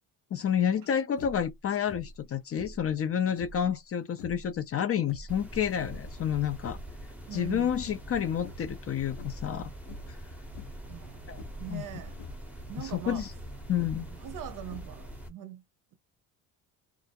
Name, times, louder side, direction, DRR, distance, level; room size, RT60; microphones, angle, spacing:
voice 1, 0.3-6.8 7.3-9.7 10.1-10.2 11.3-11.4 11.7-11.8 12.9-13.3 13.7-14.1, left 9 dB, 35° left, 0.4 m, -29 dB
sound 1, 1.1-1.5 1.9-2.2 2.5-3.7 4.1-4.5 5.0-6.1 6.5-7.0 7.4-8.2 8.4-8.8 9.1-9.5 9.9-10.2 10.5-10.9 11.4-11.7 12.1-12.5 13.0-14.2 14.6-15.2, left 2 dB, 85° left, 0.9 m, -46 dB
sound 2, 5.3-15.3, right 1 dB, 5° right, 0.7 m, -44 dB
voice 2, 7.3-7.9 10.9-12.2 12.7-13.3 14.0-15.6, right 10 dB, 50° right, 0.6 m, -42 dB
2.4 x 2.0 x 2.8 m
supercardioid pair, 85°, 43 cm